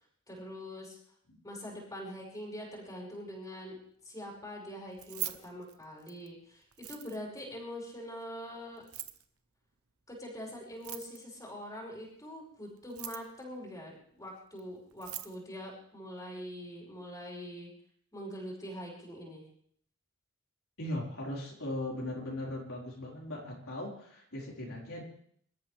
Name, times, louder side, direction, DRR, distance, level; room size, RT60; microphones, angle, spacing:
voice 1, 0.3-1.0 1.4-8.9 10.1-17.7 18.1-19.4, equal, 15° left, -4 dB, 5.3 m, -44 dB
Keys jangling, 4.9-6.3 6.7-7.4 8.8-9.2 10.7-11.4 12.8-13.4 14.6-14.7 14.9-15.4, right 14 dB, 80° right, 0.9 m, -41 dB
voice 2, 20.8-25.0, left 1 dB, 65° left, -4 dB, 4.7 m, -38 dB
26.0 x 13.5 x 3.4 m, 0.63 s
head